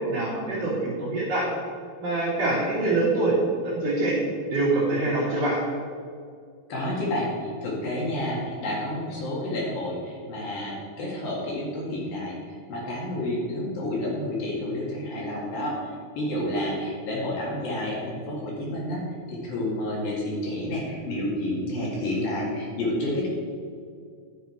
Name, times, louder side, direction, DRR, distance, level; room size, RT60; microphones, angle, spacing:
voice 1, 0.0-1.5 2.0-3.4 3.6-4.2 4.5-5.6, right 2 dB, 40° right, -8 dB, 3.6 m, -25 dB
voice 2, 6.7-19.0 19.3-23.3, left 1 dB, 60° left, -4 dB, 3.6 m, -30 dB
12.0 x 8.2 x 4.4 m, 2.1 s
omnidirectional pair, 4.8 m